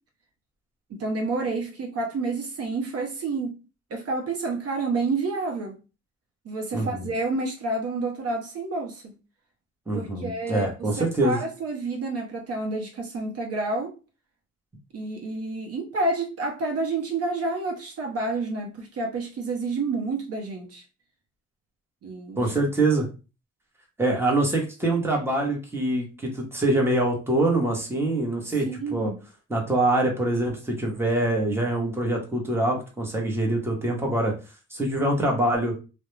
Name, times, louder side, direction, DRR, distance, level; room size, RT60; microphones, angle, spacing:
voice 1, 0.9-3.6 3.9-5.8 6.4-9.1 9.9-13.9 14.9-20.8 22.0-22.5 28.5-29.2, right 3 dB, 50° right, 0.7 m, -29 dB
voice 2, 6.7-7.1 9.9-11.4 22.4-23.1 24.0-29.1 29.5-34.3 34.7-35.7, right 2 dB, 10° right, 0.9 m, -24 dB
2.3 x 2.1 x 3.0 m
cardioid pair, 90°, 30 cm